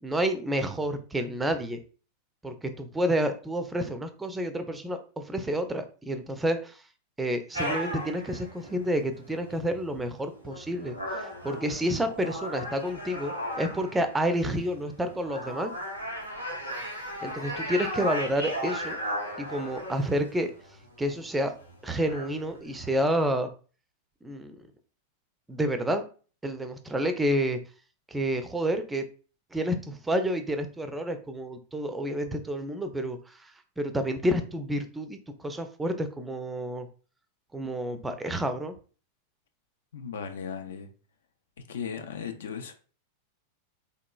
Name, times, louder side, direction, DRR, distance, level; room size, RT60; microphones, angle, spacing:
voice 1, 0.0-1.8 2.4-6.8 7.2-15.7 17.2-19.0 19.4-20.5 21.0-21.5 21.8-23.5 24.2-24.6 25.5-26.0 26.4-27.6 28.1-29.0 29.5-33.5 33.8-36.9 37.5-38.7, equal, 10° right, 0.4 m, -29 dB
sound 1, 7.5-23.1, equal, 90° left, 0.8 m, -37 dB
voice 2, 39.9-40.9 41.7-42.7, left 7 dB, 60° left, 0.4 m, -36 dB
3.7 x 2.9 x 2.2 m
figure-of-eight pair, 90°, 0 cm